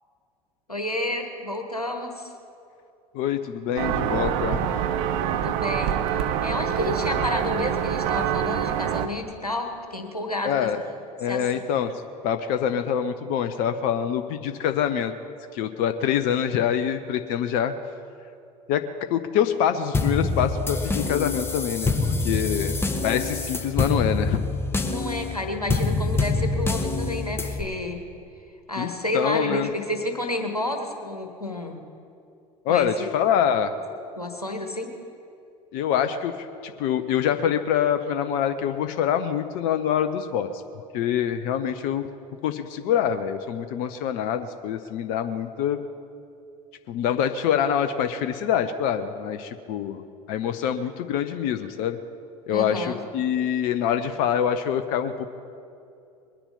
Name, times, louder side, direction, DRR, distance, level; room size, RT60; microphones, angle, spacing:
voice 1, 0.7-2.3 5.3-10.7 11.2-11.6 24.8-28.0 28.7-31.8 32.7-33.1 34.2-34.9 52.5-53.0, left 1 dB, 90° left, 3 dB, 1.4 m, -30 dB
voice 2, 3.1-4.6 10.4-10.8 11.2-11.9 12.2-15.1 15.5-17.7 18.7-18.8 19.1-22.8 23.0-24.4 28.8-29.7 32.6-33.7 35.7-40.6 40.9-42.1 42.4-45.8 46.9-50.0 50.3-52.0 52.5-55.3, left 9 dB, 50° left, 9 dB, 0.7 m, -25 dB
sound 1, 3.8-9.1, right 10 dB, 55° right, 0.9 m, -25 dB
sound 2, 19.9-27.6, left 3 dB, 10° left, 1.4 m, -26 dB
21.5 x 10.0 x 5.5 m, 2.6 s
figure-of-eight pair, 70°, 19 cm